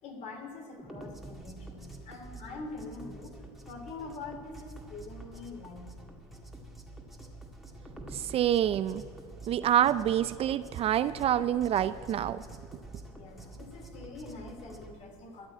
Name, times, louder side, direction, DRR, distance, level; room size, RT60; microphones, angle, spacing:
voice 1, 0.0-3.4 3.6-5.9 13.1-15.5, left 3 dB, 50° left, 3 dB, 2.9 m, -44 dB
sound 1, 0.8-14.9, right 2 dB, ahead, 1.9 m, -47 dB
voice 2, 8.1-9.0 9.5-12.4, right 11 dB, 40° right, 14 dB, 0.4 m, -27 dB
14.0 x 6.6 x 9.8 m, 2.1 s
supercardioid pair, 100°, 15 cm